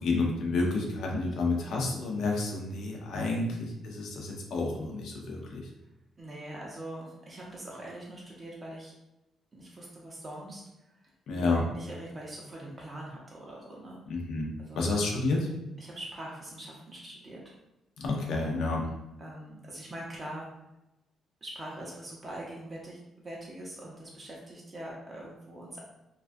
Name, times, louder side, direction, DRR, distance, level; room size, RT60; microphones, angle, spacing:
voice 1, 0.0-5.6 11.3-11.6 14.1-14.5 14.8-15.5 18.0-18.9, left 3 dB, 75° left, 0 dB, 0.5 m, -30 dB
voice 2, 6.2-8.9 9.5-10.6 11.3-14.0 14.6-14.9 15.8-17.4 19.2-20.5 21.4-25.8, right 1 dB, 25° right, -4 dB, 0.5 m, -43 dB
2.3 x 2.3 x 2.5 m, 0.92 s
cardioid pair, 90°, 0 cm